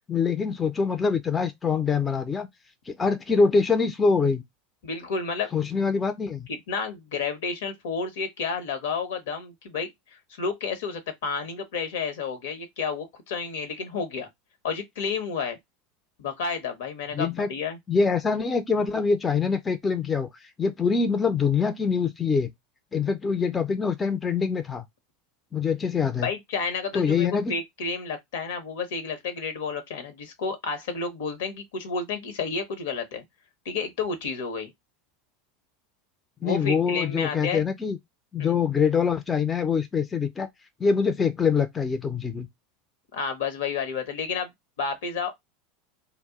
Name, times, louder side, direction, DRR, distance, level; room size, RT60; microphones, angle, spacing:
voice 1, 0.1-2.5 2.9-4.4 5.5-6.5 17.1-17.5 17.9-22.5 22.9-24.8 25.5-26.3 26.9-27.5 36.4-38.0 38.3-40.5 40.8-42.5, left 5 dB, 20° left, 0.5 m, -24 dB
voice 2, 4.8-5.5 6.5-14.3 14.6-15.6 16.2-17.8 26.2-33.2 33.6-34.7 36.4-37.6 38.4-38.5 43.1-44.5 44.8-45.4, left 5 dB, 70° left, 0.8 m, -31 dB
2.4 x 2.0 x 3.5 m
hypercardioid pair, 85°, 0 cm